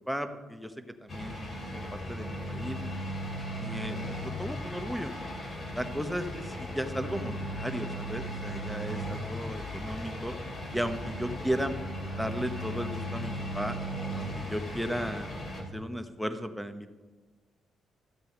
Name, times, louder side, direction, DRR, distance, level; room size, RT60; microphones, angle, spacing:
voice 1, 0.1-0.7 1.0-1.5 1.7-3.1 3.6-5.1 5.7-10.4 10.7-11.7 12.2-13.8 14.1-15.4 15.7-16.9, equal, ahead, 7 dB, 0.9 m, -35 dB
sound 1, 1.1-15.6, equal, 40° left, 2.6 m, -37 dB
14.0 x 8.0 x 4.4 m, 1.3 s
cardioid pair, 90°, 0 cm